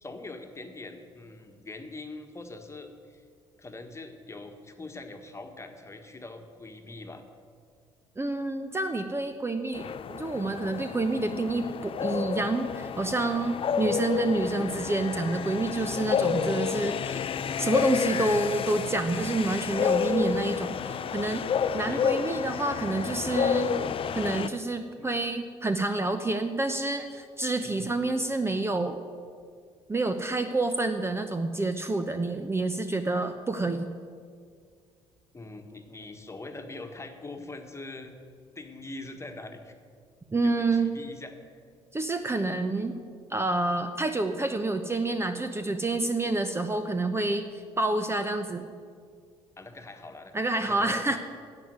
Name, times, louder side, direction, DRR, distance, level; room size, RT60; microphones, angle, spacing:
voice 1, 0.0-3.2 3.6-7.2 13.8-14.0 21.9-22.0 25.0-25.1 27.6-27.9 35.3-38.1 38.5-39.7 40.4-41.3 49.6-51.0, left 2 dB, 20° left, 6 dB, 1.6 m, -43 dB
voice 2, 8.2-17.3 17.6-21.5 21.7-23.7 24.1-29.0 29.9-33.9 40.3-40.9 41.9-43.0 43.3-48.7 50.3-51.2, right 2 dB, 20° right, 8 dB, 0.9 m, -28 dB
sound 1, 9.7-24.5, left 7 dB, 40° left, 0.6 m, -30 dB
11.0 x 8.1 x 9.5 m, 2.1 s
hypercardioid pair, 50°, 14 cm